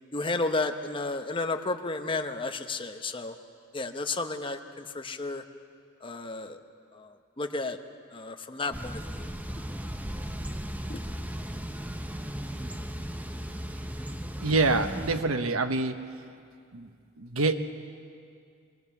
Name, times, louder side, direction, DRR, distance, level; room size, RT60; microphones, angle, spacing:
voice 1, 0.1-3.3 3.7-5.4 6.0-6.6 6.9-7.8 8.1-9.3 10.9-11.0, left 3 dB, 25° left, 5 dB, 1.0 m, -32 dB
Thunder / Bicycle, 8.7-15.2, equal, 10° right, 0.8 m, -36 dB
voice 2, 14.4-16.0 16.7-16.9 17.2-17.6, right 3 dB, 90° right, 8 dB, 1.1 m, -26 dB
22.5 x 19.0 x 7.2 m, 2.3 s
head